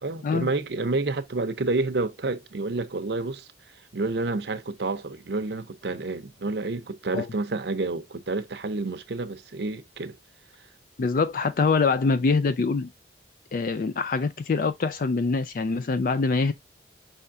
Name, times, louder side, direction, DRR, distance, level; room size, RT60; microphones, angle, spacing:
voice 1, 0.0-3.5 3.9-10.2, right 3 dB, 65° right, 0.7 m, -29 dB
voice 2, 11.0-12.9 13.5-16.5, left 4 dB, 50° left, 0.3 m, -24 dB
5.5 x 3.5 x 2.6 m
head